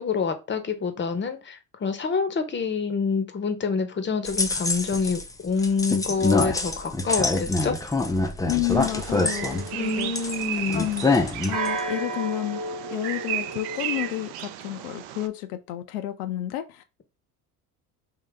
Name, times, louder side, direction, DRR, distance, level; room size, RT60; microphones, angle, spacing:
voice 1, 0.0-7.7 9.8-10.9, left 5 dB, 25° left, 0.8 m, -27 dB
sound 1, 4.3-5.3 5.6-10.4 10.7-11.8, left 3 dB, 10° left, 0.4 m, -25 dB
voice 2, 8.5-10.1 10.6-11.2 11.5-12.6 12.9-16.8, left 16 dB, 65° left, 0.6 m, -31 dB
Bird vocalization bird call bird song, 8.7-15.3, right 12 dB, 55° right, 0.5 m, -35 dB
sound 2, 9.1-10.3 11.5-14.1, right 2 dB, 35° right, 1.2 m, -33 dB
3.7 x 2.8 x 3.2 m
hypercardioid pair, 60°, 47 cm